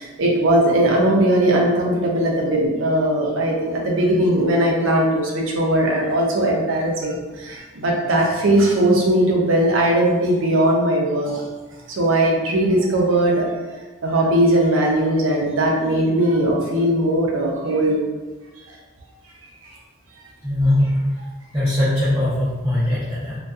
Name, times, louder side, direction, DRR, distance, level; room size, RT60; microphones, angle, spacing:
voice 1, 0.0-11.4 11.9-13.5 14.0-18.0, right 1 dB, 70° right, -1 dB, 0.5 m, -19 dB
voice 2, 20.4-21.1 21.5-23.4, left 1 dB, 20° right, -11 dB, 0.5 m, -20 dB
2.5 x 2.2 x 2.3 m, 1.3 s
head